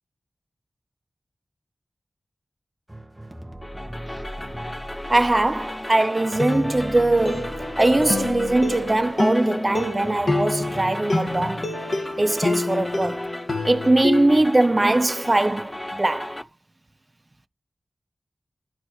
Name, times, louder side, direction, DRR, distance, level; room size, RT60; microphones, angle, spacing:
sound 1, 2.9-12.0 12.4-13.2, right 1 dB, 15° right, 1.7 m, -40 dB
sound 2, 3.6-16.4, left 1 dB, 20° left, 0.6 m, -35 dB
voice 1, 5.1-11.6 12.2-13.3 13.6-16.4, right 2 dB, 35° right, 0.6 m, -21 dB
sound 3, 5.5-5.8 6.4-14.4, left 2 dB, 55° left, 1.7 m, -27 dB
12.0 x 4.3 x 3.1 m
cardioid pair, 55°, 0 cm